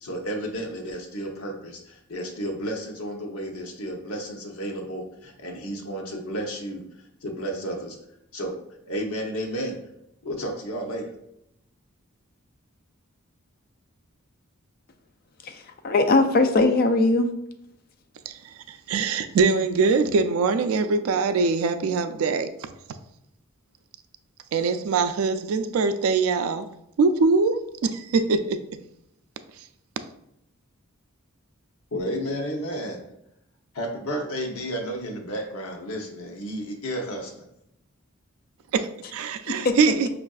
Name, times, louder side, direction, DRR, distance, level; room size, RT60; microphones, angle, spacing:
voice 1, 0.0-1.8 2.1-6.8 7.2-8.0 8.3-8.6 8.9-9.8 10.2-11.1 31.9-33.0 33.7-37.4, equal, 85° left, 0.8 m, -32 dB
voice 2, 15.4-17.3 39.5-39.8, left 2 dB, 45° left, 0.4 m, -20 dB
voice 3, 18.7-22.5 24.5-26.7 27.0-28.6 38.7-40.1, right 4 dB, 80° right, 0.3 m, -23 dB
5.3 x 2.4 x 2.3 m
head